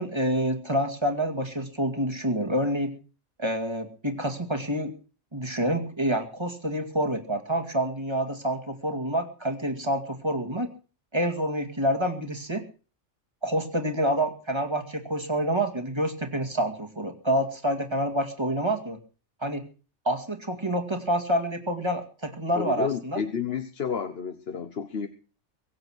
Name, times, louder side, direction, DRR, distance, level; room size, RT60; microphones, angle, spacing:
voice 1, 0.0-2.9 3.4-4.9 5.3-10.7 11.1-12.6 13.4-19.0 19.4-19.6 20.1-23.2, right 1 dB, 20° right, 5 dB, 2.3 m, -27 dB
voice 2, 22.6-25.1, left 7 dB, 55° left, 9 dB, 1.3 m, -31 dB
23.5 x 7.9 x 6.2 m, 0.38 s
omnidirectional pair, 1.2 m